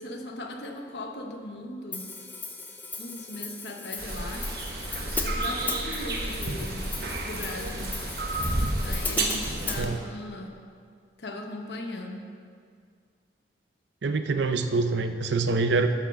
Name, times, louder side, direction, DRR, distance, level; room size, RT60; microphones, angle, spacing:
voice 1, 0.0-2.1 3.0-4.6 5.2-6.9 7.2-8.0 8.8-10.6 11.2-12.3, left 1 dB, 70° left, 3 dB, 1.0 m, -38 dB
Hi-hat, 1.9-9.8, left 3 dB, 10° left, 0.5 m, -37 dB
sound 1, 4.0-9.8, right 2 dB, 55° right, 1.1 m, -31 dB
voice 2, 14.0-15.9, right 3 dB, 75° right, 8 dB, 0.6 m, -25 dB
11.5 x 4.7 x 6.2 m, 2.1 s
head